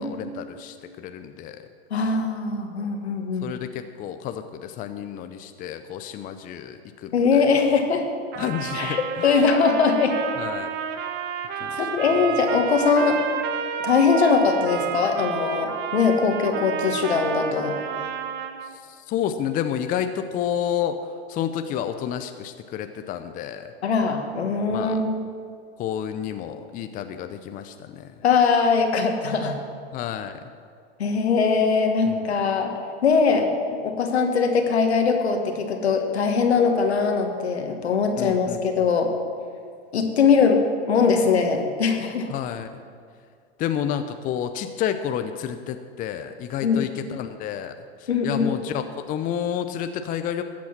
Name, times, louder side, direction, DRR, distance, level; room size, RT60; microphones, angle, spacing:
voice 1, 0.0-1.6 3.4-7.4 8.4-9.4 10.4-10.7 11.6-11.9 18.8-21.0 21.3-23.7 24.7-25.0 25.8-28.1 29.9-30.3 32.1-32.2 38.2-38.9 42.3-42.8 43.6-47.7 48.0-50.4, left 9 dB, 25° left, 8 dB, 0.6 m, -30 dB
voice 2, 1.9-3.5 7.1-8.0 8.7-10.2 11.0-11.1 11.7-13.2 13.8-17.7 23.8-25.2 28.2-29.6 31.0-32.7 33.0-39.1 39.9-42.3 46.6-46.9 48.1-48.5, left 5 dB, 80° left, 4 dB, 1.8 m, -21 dB
Trumpet, 8.3-18.7, right 7 dB, 30° right, 1.0 m, -31 dB
13.5 x 8.4 x 6.0 m, 2.2 s
hypercardioid pair, 110°, 32 cm